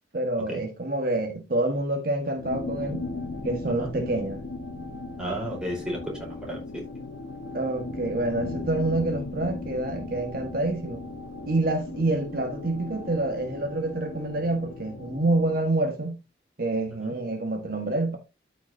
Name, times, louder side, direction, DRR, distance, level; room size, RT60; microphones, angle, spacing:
voice 1, 0.1-3.1 3.4-4.4 7.5-11.0 11.5-16.2 16.6-18.2, right 2 dB, 50° right, 1.4 m, -27 dB
sound 1, 2.4-15.7, left 3 dB, 90° left, 1.3 m, -37 dB
voice 2, 5.2-6.8 17.0-17.1, equal, 5° right, 4.4 m, -33 dB
13.0 x 5.8 x 2.7 m
head